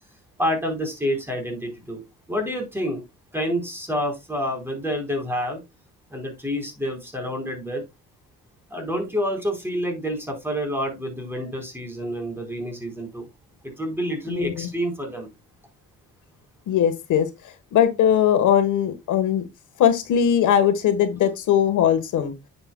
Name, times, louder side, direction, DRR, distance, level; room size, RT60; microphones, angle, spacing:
voice 1, 0.4-2.0 2.3-3.0 3.3-5.6 6.1-7.8 8.7-13.3 13.6-15.3, equal, 10° right, 4.1 m, -28 dB
voice 2, 14.3-14.7 16.7-19.5 19.8-22.3, left 9 dB, 75° left, 1.4 m, -20 dB
9.8 x 6.9 x 2.2 m
cardioid pair, 90°, 30 cm